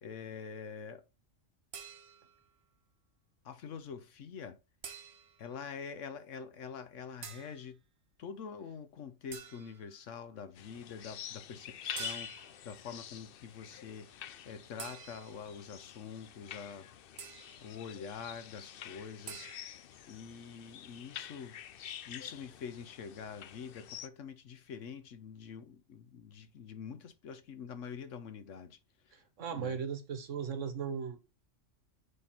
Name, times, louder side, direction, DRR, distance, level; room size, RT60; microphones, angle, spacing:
voice 1, 0.0-1.0 3.4-4.6 5.4-7.8 8.2-16.9 17.6-19.8 20.1-21.6 22.1-28.8 29.0-29.1 29.5-29.8, left 6 dB, 80° left, 1.2 m, -46 dB
sound 1, 1.7-2.4 4.8-5.5 7.2-7.6 9.3-9.9 12.0-12.6 14.8-15.5 17.2-17.7 19.3-19.6, right 7 dB, 60° right, 1.1 m, -47 dB
sound 2, 10.6-24.1, left 9 dB, 60° left, 0.6 m, -47 dB
voice 2, 29.4-31.3, right 7 dB, 75° right, 1.4 m, -37 dB
6.5 x 3.8 x 4.3 m
omnidirectional pair, 1.3 m